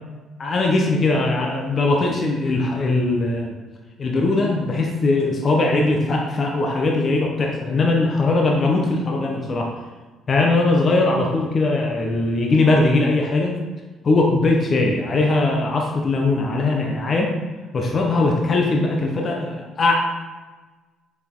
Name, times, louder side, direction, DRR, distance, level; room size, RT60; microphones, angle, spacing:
voice 1, 0.4-3.5 4.0-9.7 10.3-13.6 14.0-17.3 17.7-19.9, left 2 dB, 40° left, 0 dB, 1.0 m, -20 dB
6.5 x 5.1 x 3.7 m, 1.3 s
cardioid pair, 90°, 0 cm